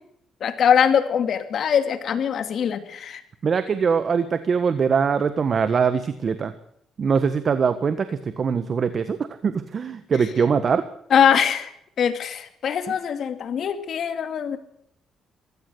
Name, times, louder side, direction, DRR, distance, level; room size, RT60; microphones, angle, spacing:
voice 1, 0.4-3.2 11.1-11.7 12.0-14.6, left 8 dB, 60° left, 9 dB, 2.4 m, -22 dB
voice 2, 3.4-6.5 7.0-9.2 9.4-10.8, right 6 dB, 45° right, 12 dB, 1.4 m, -22 dB
22.0 x 15.5 x 8.0 m, 0.71 s
cardioid pair, 90°, 0 cm